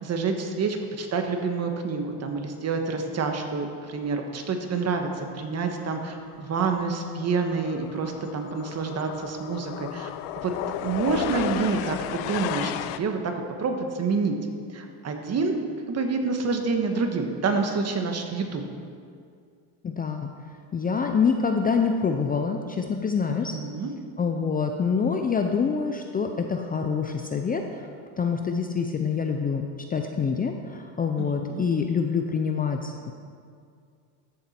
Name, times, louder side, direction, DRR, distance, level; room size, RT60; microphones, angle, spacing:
voice 1, 0.0-10.1 10.4-10.5 10.8-13.2 13.6-14.4 14.7-15.6 15.9-18.6 23.3-23.9 31.2-31.7, right 4 dB, 35° right, 4 dB, 1.3 m, -28 dB
sound 1, 6.2-6.4 6.7-13.0, left 13 dB, 80° left, 0.6 m, -34 dB
voice 2, 19.8-20.3 20.7-23.6 24.2-27.9 28.2-33.1, left 5 dB, 20° left, 4 dB, 0.5 m, -26 dB
14.0 x 7.1 x 4.3 m, 2.3 s
supercardioid pair, 115°, 43 cm